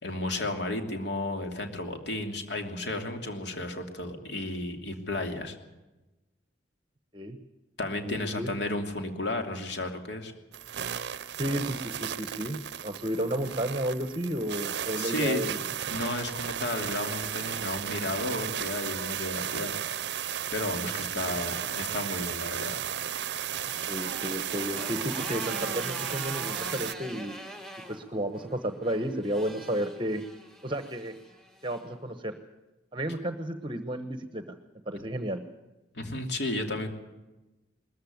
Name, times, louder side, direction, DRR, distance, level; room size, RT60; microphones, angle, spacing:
voice 1, 0.0-5.6 7.8-10.3 15.0-15.5 15.9-20.0 20.5-22.8 35.9-36.9, left 2 dB, 65° left, 4 dB, 2.9 m, -33 dB
voice 2, 8.0-8.5 11.4-15.6 21.1-21.4 23.9-27.4 27.9-30.2 30.6-31.1 31.6-32.4 32.9-34.6 34.9-35.4, equal, 25° right, 9 dB, 1.0 m, -32 dB
sound 1, 10.5-26.9, right 9 dB, 60° right, 0.6 m, -34 dB
Motorcycle, 22.5-31.9, equal, ahead, 2.2 m, -44 dB
21.0 x 14.5 x 9.4 m, 1.0 s
head